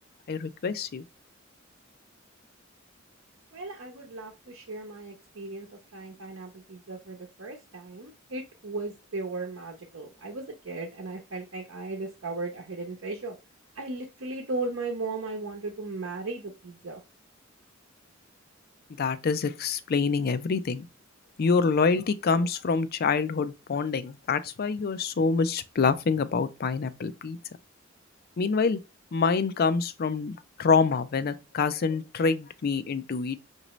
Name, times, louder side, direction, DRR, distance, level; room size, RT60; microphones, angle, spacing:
voice 1, 0.3-1.0 19.0-20.9 21.4-27.4 28.4-28.8 29.1-33.4, left 5 dB, 50° left, 0.4 m, -26 dB
voice 2, 3.5-5.7 5.9-13.3 13.7-17.0, right 3 dB, 80° right, 0.8 m, -36 dB
5.9 x 2.7 x 3.0 m
head